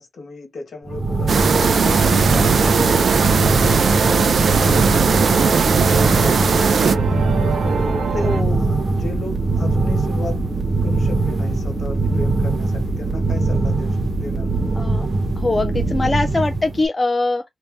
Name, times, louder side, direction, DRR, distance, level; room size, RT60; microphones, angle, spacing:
voice 1, 0.0-1.4 1.8-3.9 4.2-7.6 8.1-10.4 10.8-14.8, left 2 dB, 50° left, 1.4 m, -35 dB
sound 1, 0.9-16.9, right 3 dB, 25° right, 0.8 m, -21 dB
sound 2, 1.3-7.0, right 6 dB, 50° right, 0.4 m, -19 dB
sound 3, 3.1-8.4, right 5 dB, 85° right, 0.8 m, -28 dB
voice 2, 8.2-8.5 14.8-15.1 15.4-17.4, left 2 dB, 15° left, 0.3 m, -22 dB
3.3 x 2.7 x 3.4 m
wide cardioid pair, 170°, 0 cm